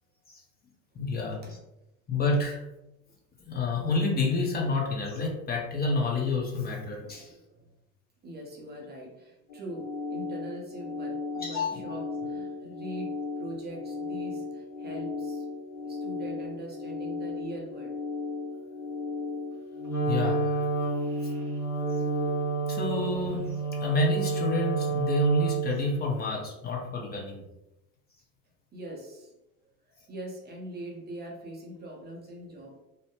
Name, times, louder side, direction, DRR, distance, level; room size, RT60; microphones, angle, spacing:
voice 1, 0.9-1.6 2.1-2.6 3.5-7.3 11.3-11.8 20.1-20.5 22.7-23.5 23.8-27.4, left 3 dB, 20° left, -1 dB, 0.7 m, -29 dB
voice 2, 7.0-7.7 8.2-15.5 15.8-18.0 18.5-18.6 28.7-29.3 29.8-32.8, right 1 dB, 25° right, 0 dB, 0.6 m, -42 dB
sound 1, 9.5-22.3, left 3 dB, 65° left, 0.8 m, -36 dB
Wind instrument woodwind instrument, 19.8-25.9, right 4 dB, 5° left, 1.2 m, -29 dB
2.7 x 2.0 x 3.0 m, 0.92 s
hypercardioid pair, 85°, 44 cm